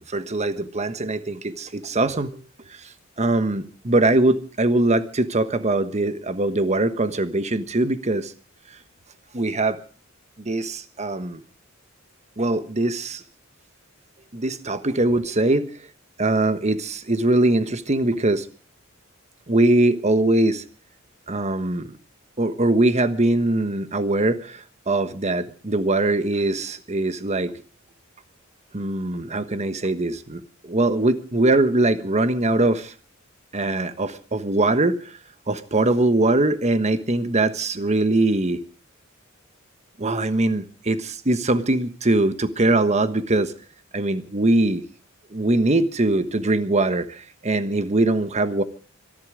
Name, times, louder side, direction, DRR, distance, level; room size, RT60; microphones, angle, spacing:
voice 1, 0.0-2.4 2.7-8.3 8.7-8.8 9.3-9.8 10.4-11.4 12.4-13.2 14.3-15.9 16.2-18.5 19.5-20.6 21.3-22.0 22.4-27.6 28.7-32.9 33.5-35.2 35.5-38.6 40.0-43.5 43.9-44.8 45.3-48.6, right 2 dB, 35° right, 11 dB, 1.3 m, -22 dB
25.0 x 11.5 x 5.0 m, 0.39 s
head